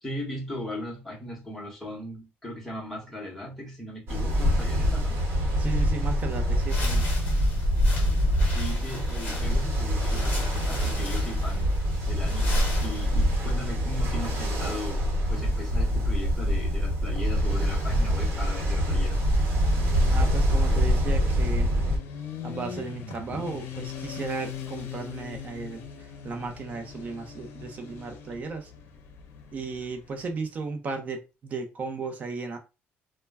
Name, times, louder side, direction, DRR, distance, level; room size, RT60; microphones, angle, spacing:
voice 1, 0.0-5.2 8.5-11.7 12.0-15.0 15.3-19.2, left 1 dB, 5° left, 0.9 m, -38 dB
Ocean, 4.1-22.0, equal, 60° right, 1.1 m, -25 dB
voice 2, 5.6-7.1 20.1-21.7 22.4-28.7 29.5-32.6, right 4 dB, 35° right, 0.6 m, -35 dB
sound 1, 6.6-13.5, left 1 dB, 35° left, 1.0 m, -36 dB
Motorcycle, 18.8-30.3, left 7 dB, 75° left, 0.5 m, -41 dB
2.1 x 2.1 x 3.3 m
cardioid pair, 155°, 4 cm